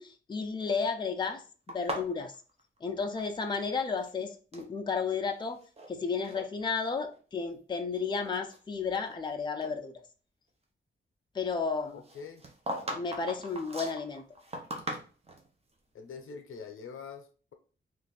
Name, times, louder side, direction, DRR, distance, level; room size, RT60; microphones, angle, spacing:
voice 1, 0.0-1.4 1.7-2.3 2.8-5.6 5.9-9.9 11.3-12.0 12.9-14.2, left 5 dB, 20° left, 4 dB, 0.4 m, -32 dB
sound 1, 1.7-3.7 3.9-4.7 5.3-5.9 6.2-6.5 7.1-7.2 7.8-9.3 9.6-9.7 12.0-15.5, right 1 dB, 30° right, 0.8 m, -40 dB
voice 2, 11.9-12.4 15.9-17.5, left 5 dB, 90° left, 6 dB, 0.7 m, -44 dB
3.2 x 2.5 x 3.9 m, 0.38 s
wide cardioid pair, 140°, 21 cm